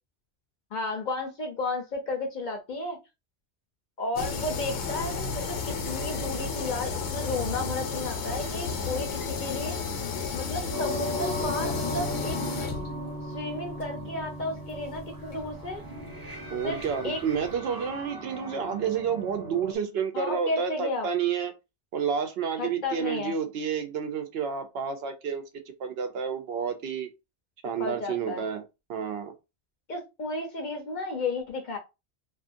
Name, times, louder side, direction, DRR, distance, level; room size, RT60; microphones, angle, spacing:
voice 1, 0.7-3.0 4.0-9.8 10.3-12.7 13.3-15.8 16.6-17.2 20.1-21.1 22.6-23.3 27.8-28.4 29.9-31.8, left 2 dB, 55° left, 0.6 m, -33 dB
sound 1, 4.2-17.5, left 5 dB, 85° left, 1.0 m, -33 dB
sound 2, 10.7-19.7, equal, 25° right, 0.6 m, -37 dB
voice 2, 16.5-21.5 21.9-27.1 27.6-28.6 28.9-29.3, right 7 dB, 70° right, 0.8 m, -30 dB
2.4 x 2.4 x 2.5 m
omnidirectional pair, 1.1 m